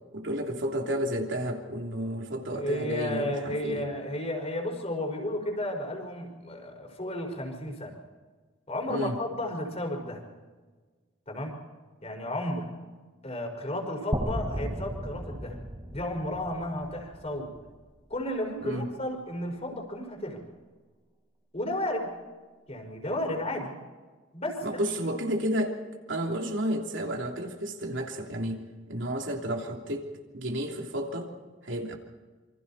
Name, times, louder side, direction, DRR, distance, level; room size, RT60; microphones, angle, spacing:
voice 1, 0.1-3.9 8.9-9.2 18.6-18.9 24.6-25.8 26.1-30.1 30.3-31.3 31.6-32.0, equal, 75° right, 1 dB, 3.2 m, -31 dB
voice 2, 2.5-8.0 8.7-10.2 11.3-11.5 12.0-12.7 13.2-15.6 15.9-17.5 18.1-20.4 21.5-22.1 22.7-23.7 24.3-25.1, left 1 dB, 35° left, 2 dB, 5.1 m, -33 dB
sound 1, 14.1-18.2, right 1 dB, 25° right, 1.4 m, -35 dB
27.0 x 25.0 x 4.3 m, 1.4 s
head